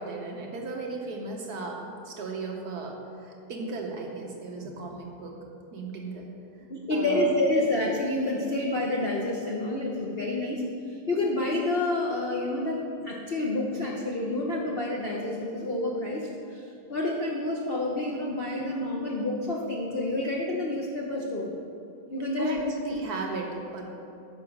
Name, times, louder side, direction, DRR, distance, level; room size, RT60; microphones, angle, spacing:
voice 1, 0.0-5.4 5.7-6.3 6.9-7.3 22.4-23.8, right 3 dB, 60° right, 1 dB, 1.2 m, -36 dB
voice 2, 6.7-10.6 11.1-21.5 22.1-23.0, left 1 dB, 60° left, -2 dB, 0.6 m, -28 dB
9.5 x 5.7 x 5.9 m, 2.6 s
omnidirectional pair, 2.2 m